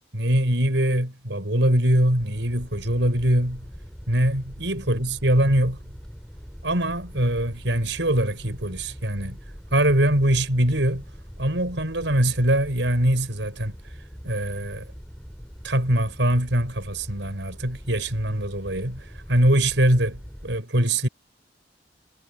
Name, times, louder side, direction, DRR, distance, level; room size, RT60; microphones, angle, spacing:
voice 1, 0.1-3.7 4.1-5.8 6.6-9.4 9.7-11.0 11.4-13.8 14.2-14.8 15.6-19.0 19.3-21.1, right 1 dB, 75° right, 5.2 m, -22 dB
sound 1, 2.2-20.6, equal, 5° left, 4.6 m, -42 dB
head